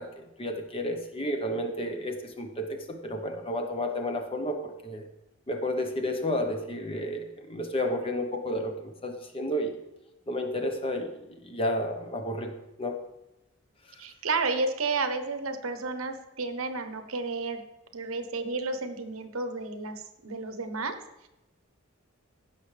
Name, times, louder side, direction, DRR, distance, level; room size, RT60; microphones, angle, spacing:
voice 1, 0.0-5.1 5.5-9.8 10.3-12.5 12.8-13.0, left 1 dB, 25° left, 5 dB, 1.0 m, -31 dB
voice 2, 14.0-17.6 17.9-21.0, right 3 dB, 85° right, 8 dB, 1.0 m, -31 dB
15.5 x 6.1 x 3.3 m, 0.95 s
head